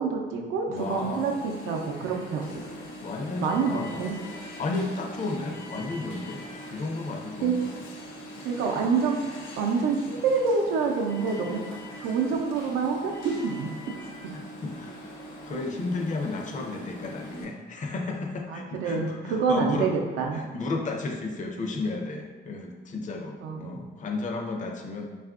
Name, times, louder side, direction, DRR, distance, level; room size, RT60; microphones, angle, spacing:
voice 1, 0.0-2.6 3.4-4.1 7.4-7.6 8.4-9.2 9.6-11.6 12.0-13.7 18.5-20.4 23.4-23.6, right 5 dB, 85° right, 2 dB, 0.5 m, -27 dB
voice 2, 0.7-1.3 3.0-4.1 4.6-6.4 6.7-7.7 14.3-15.1 15.4-19.9 20.3-25.1, left 3 dB, 40° left, 2 dB, 0.5 m, -33 dB
Alarm, 0.8-17.5, equal, 85° left, 0.6 m, -42 dB
3.4 x 2.4 x 2.3 m, 1.2 s
cardioid pair, 90°, 20 cm